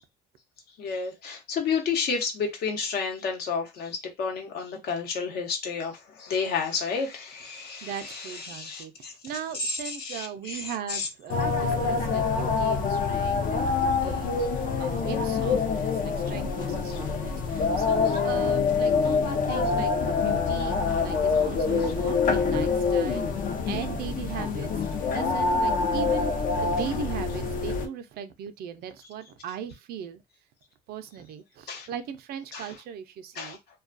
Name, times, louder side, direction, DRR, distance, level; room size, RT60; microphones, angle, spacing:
voice 1, 0.8-9.1 9.6-11.1 31.7-31.9 32.5-32.7 33.4-33.6, left 5 dB, 70° left, 0.9 m, -31 dB
voice 2, 7.6-24.7 25.1-30.2 30.9-33.6, right 8 dB, 65° right, 0.4 m, -38 dB
sound 1, 11.3-27.9, left 4 dB, 50° left, 0.5 m, -26 dB
2.3 x 2.2 x 2.5 m
cardioid pair, 110°, 17 cm